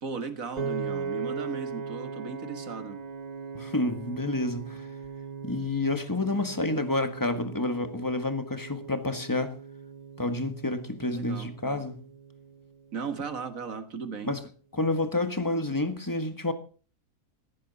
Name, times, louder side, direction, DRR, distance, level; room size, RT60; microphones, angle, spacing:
voice 1, 0.0-3.0 11.1-11.5 12.9-14.3, right 5 dB, 60° right, 1.9 m, -36 dB
Piano, 0.6-12.8, right 5 dB, 40° right, 0.6 m, -39 dB
voice 2, 3.5-4.9 5.4-9.5 10.2-12.0 14.2-14.4 14.7-16.5, left 2 dB, 15° left, 1.5 m, -29 dB
17.5 x 15.0 x 4.2 m
omnidirectional pair, 1.6 m